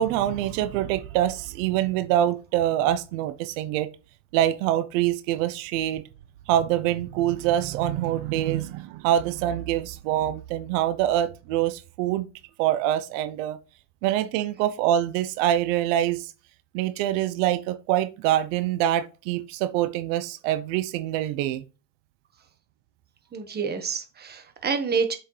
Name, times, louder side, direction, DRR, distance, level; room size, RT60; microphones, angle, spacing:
voice 1, 0.0-3.9 4.3-6.0 6.5-12.3 12.6-13.6 14.0-16.3 16.7-21.6, right 12 dB, 75° right, 0.8 m, -25 dB
voice 2, 23.3-25.2, right 5 dB, 25° right, 1.5 m, -28 dB
7.6 x 6.3 x 3.3 m
supercardioid pair, 130°, 39 cm